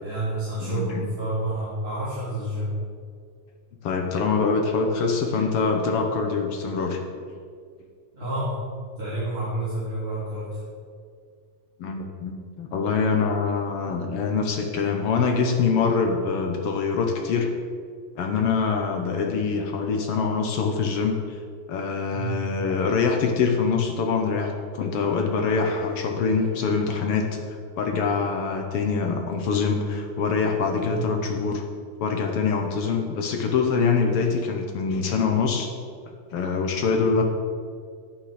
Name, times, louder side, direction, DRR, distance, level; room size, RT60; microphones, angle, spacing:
voice 1, 0.0-2.7 8.1-8.6 9.0-10.6 18.4-18.6 22.1-22.4 30.8-31.1 37.1-37.2, right 2 dB, 20° right, -10 dB, 2.5 m, -29 dB
voice 2, 0.6-1.1 3.8-7.1 11.8-17.5 18.1-21.4 21.7-31.6 32.0-35.7 36.1-37.2, left 5 dB, 65° left, 3 dB, 1.5 m, -24 dB
11.5 x 9.2 x 5.1 m, 2.1 s
omnidirectional pair, 3.6 m